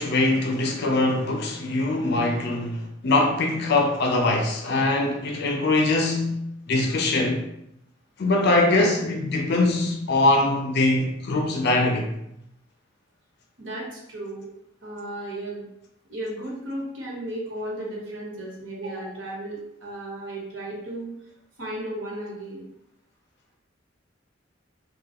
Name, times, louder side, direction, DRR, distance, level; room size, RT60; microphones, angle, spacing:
voice 1, 0.0-6.4 6.7-7.4 8.2-12.1, left 2 dB, 60° left, 0.5 m, -22 dB
voice 2, 13.6-14.5 14.8-15.7 16.1-21.1 21.6-22.7, right 1 dB, 90° right, 1.0 m, -34 dB
3.3 x 2.2 x 2.8 m
head